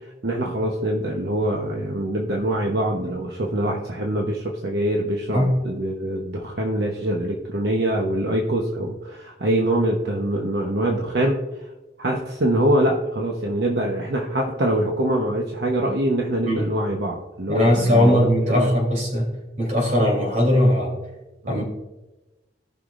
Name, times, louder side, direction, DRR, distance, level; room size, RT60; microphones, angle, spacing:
voice 1, 0.2-11.7 12.0-18.7 21.4-21.6, right 1 dB, 65° right, 0 dB, 1.0 m, -24 dB
voice 2, 17.5-19.3 19.6-21.0 21.5-21.6, equal, 40° right, -1 dB, 3.2 m, -19 dB
17.5 x 5.8 x 2.5 m, 1.0 s
head